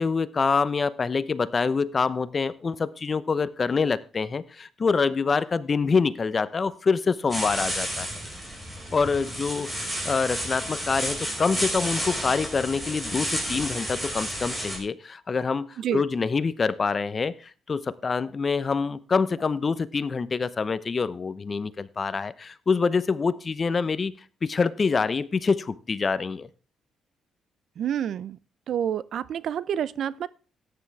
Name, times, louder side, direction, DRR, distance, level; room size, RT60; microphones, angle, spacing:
voice 1, 0.0-8.1 8.9-24.1 24.4-26.5, left 5 dB, 35° left, 0.8 m, -26 dB
sound 1, 7.3-14.8, equal, 10° right, 5.2 m, -31 dB
voice 2, 27.8-28.4 28.7-30.3, right 9 dB, 65° right, 0.6 m, -28 dB
13.5 x 9.7 x 3.4 m
cardioid pair, 90°, 0 cm